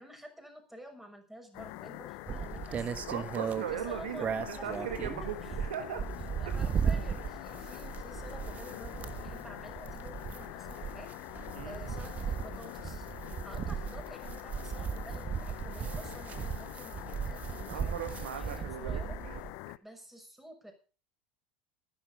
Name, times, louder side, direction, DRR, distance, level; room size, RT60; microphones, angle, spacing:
voice 1, 0.0-3.3 3.7-4.3 4.6-5.5 6.4-11.1 11.6-13.1 13.4-19.2 19.8-20.7, right 1 dB, 5° right, 4 dB, 6.3 m, -50 dB
sound 1, 1.5-19.8, left 21 dB, 60° left, 0.7 m, -45 dB
sound 2, 2.3-19.5, right 7 dB, 35° right, 1.4 m, -37 dB
voice 2, 3.1-6.0 11.5-11.8 17.6-19.4, right 9 dB, 75° right, 9 dB, 1.8 m, -39 dB
14.5 x 11.0 x 5.0 m, 0.36 s
hypercardioid pair, 85°, 5 cm